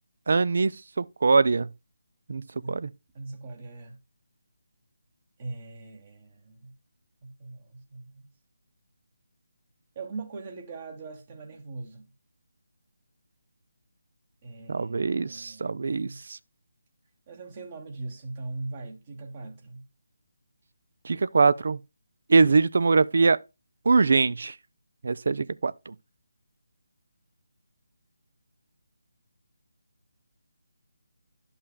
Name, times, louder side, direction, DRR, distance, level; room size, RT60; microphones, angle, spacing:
voice 1, 0.3-1.7 2.3-2.9 14.7-16.4 21.0-21.8 22.3-23.4 23.9-24.5 25.0-25.9, right 4 dB, 55° right, 0.3 m, -23 dB
voice 2, 3.1-4.0 5.4-6.7 7.2-8.3 9.9-12.0 14.4-16.2 17.3-19.8, right 3 dB, 35° right, 1.1 m, -40 dB
11.5 x 5.5 x 2.2 m
figure-of-eight pair, 150°, 0 cm